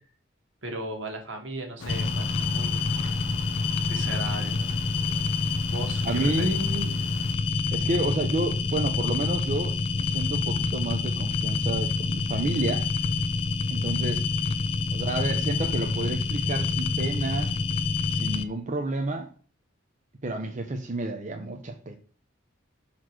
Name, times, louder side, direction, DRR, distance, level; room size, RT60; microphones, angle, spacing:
voice 1, 0.6-2.9 3.9-4.7 5.7-6.6, right 1 dB, 65° right, 1.6 m, -36 dB
sound 1, 1.8-7.4, left 3 dB, 80° left, 0.7 m, -41 dB
sound 2, 1.9-18.4, left 4 dB, 30° left, 0.4 m, -27 dB
voice 2, 6.0-7.0 7.7-12.9 13.7-14.2 14.9-17.6 18.1-19.3 20.2-22.0, right 2 dB, 40° right, 0.7 m, -30 dB
6.2 x 4.2 x 4.4 m
head